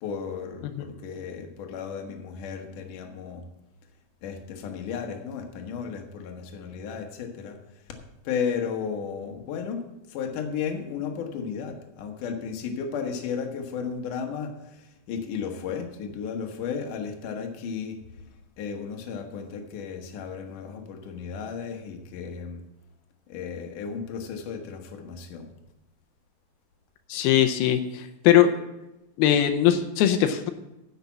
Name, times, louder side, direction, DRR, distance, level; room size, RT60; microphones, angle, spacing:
voice 1, 0.0-3.4 4.2-7.6 7.9-8.0 8.2-18.0 18.6-22.6 23.3-25.5, left 6 dB, 65° left, 3 dB, 2.6 m, -34 dB
voice 2, 27.1-28.5 29.2-30.5, left 10 dB, 85° left, 7 dB, 2.7 m, -20 dB
10.5 x 6.8 x 7.1 m, 0.94 s
omnidirectional pair, 4.3 m